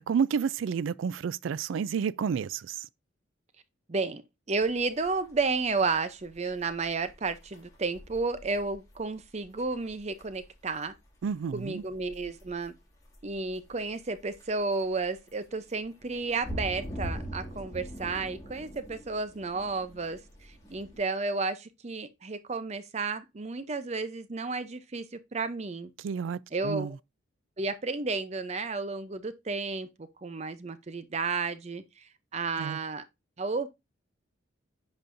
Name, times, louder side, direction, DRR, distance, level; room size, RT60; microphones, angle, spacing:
voice 1, 0.0-2.9 11.2-11.8 26.0-27.0 32.6-32.8, right 6 dB, 90° right, 0.4 m, -30 dB
voice 2, 3.9-4.2 4.5-10.9 11.5-12.7 13.2-25.9 26.5-26.9 27.6-33.0 33.4-33.7, right 3 dB, 35° right, 0.5 m, -32 dB
sound 1, 4.6-21.0, equal, 20° left, 2.2 m, -44 dB
10.0 x 5.3 x 2.6 m
head